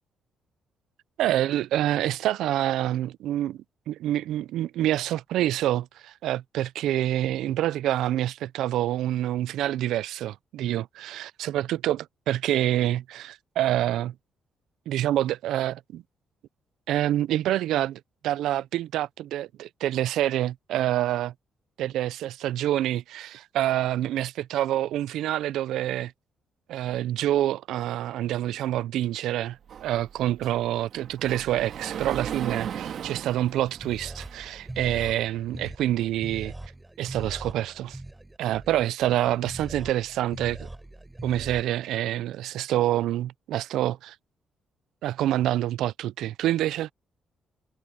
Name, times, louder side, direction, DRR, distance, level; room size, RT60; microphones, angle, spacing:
voice 1, 1.2-14.1 14.9-16.0 16.9-21.3 21.8-26.1 26.7-36.5 37.0-38.0 38.4-40.7 41.2-44.2 45.0-46.9, right 13 dB, 85° right, 0.4 m, -27 dB
Sliding door, 29.7-34.7, right 8 dB, 65° right, 1.9 m, -37 dB
sound 1, 33.4-41.6, right 2 dB, 15° right, 6.6 m, -41 dB
cardioid pair, 90°, 0 cm